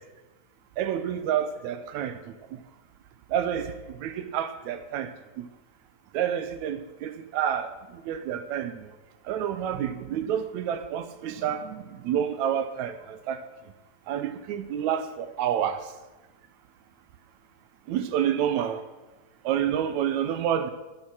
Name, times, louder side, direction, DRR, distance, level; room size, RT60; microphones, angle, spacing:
voice 1, 0.8-2.2 2.5-2.6 3.3-3.7 4.0-5.1 5.4-5.5 6.1-7.7 8.1-8.9 9.3-13.4 14.1-15.8 17.9-18.8 19.5-20.7, right 9 dB, 75° right, 9 dB, 2.1 m, -28 dB
12.0 x 9.6 x 6.1 m, 1.1 s
omnidirectional pair, 3.4 m